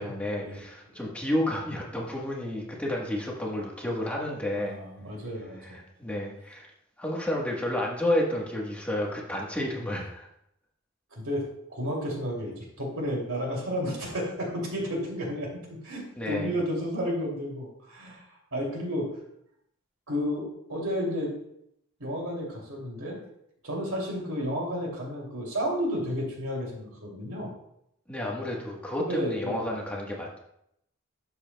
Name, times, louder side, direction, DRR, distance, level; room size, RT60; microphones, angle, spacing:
voice 1, 0.0-4.8 5.6-6.7 7.0-10.3 16.1-16.5 28.1-30.4, left 1 dB, 5° left, -2 dB, 1.2 m, -31 dB
voice 2, 4.6-5.8 11.2-15.5 15.8-18.2 18.5-19.1 20.1-21.3 22.0-23.2 23.6-27.5 29.0-29.7, equal, 85° right, -1 dB, 2.7 m, -32 dB
11.5 x 7.0 x 2.2 m, 0.76 s
head